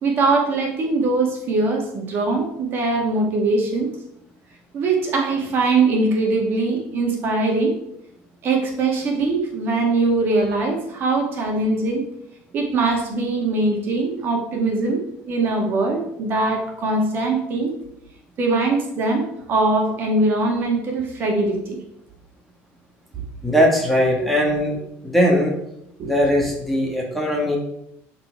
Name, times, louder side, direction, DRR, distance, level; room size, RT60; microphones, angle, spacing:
voice 1, 0.0-3.9 4.7-7.7 8.4-12.0 12.5-17.7 18.4-21.8 23.1-23.2 26.0-26.1, right 3 dB, 40° right, 1 dB, 2.0 m, -21 dB
voice 2, 23.4-24.8 25.0-25.5 26.0-27.6, equal, ahead, -2 dB, 1.8 m, -19 dB
12.0 x 4.4 x 4.7 m, 0.79 s
cardioid pair, 155°, 5 cm